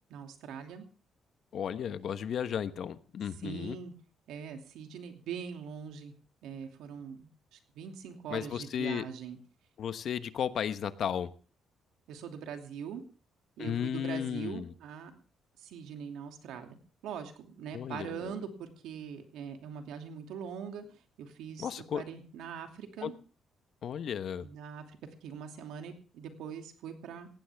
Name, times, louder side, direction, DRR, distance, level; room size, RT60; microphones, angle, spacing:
voice 1, 0.1-0.8 3.4-3.9 4.3-6.1 6.4-9.4 12.1-13.0 13.6-15.1 15.6-20.9 21.2-23.1 24.4-25.0 25.2-27.3, right 7 dB, 85° right, 5 dB, 2.7 m, -42 dB
voice 2, 1.5-3.8 8.3-9.1 9.8-11.3 13.6-14.7 17.7-18.3 21.6-22.0 23.0-23.1 23.8-24.4, left 8 dB, 65° left, 12 dB, 1.1 m, -34 dB
18.5 x 16.0 x 3.5 m, 0.37 s
cardioid pair, 90°, 0 cm